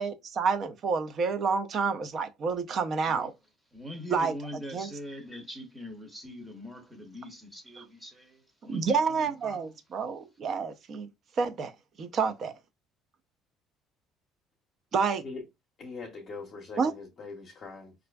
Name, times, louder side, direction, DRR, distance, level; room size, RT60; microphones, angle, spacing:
voice 1, 0.0-3.3 4.1-4.3 4.7-4.9 8.7-11.1 11.4-11.7 12.0-12.5 14.9-15.2 16.8-16.9, right 5 dB, 40° right, 0.4 m, -29 dB
voice 2, 3.7-9.7, equal, 10° right, 0.7 m, -43 dB
voice 3, 15.8-17.9, left 4 dB, 35° left, 0.6 m, -42 dB
4.2 x 2.4 x 2.2 m
cardioid pair, 140°, 0 cm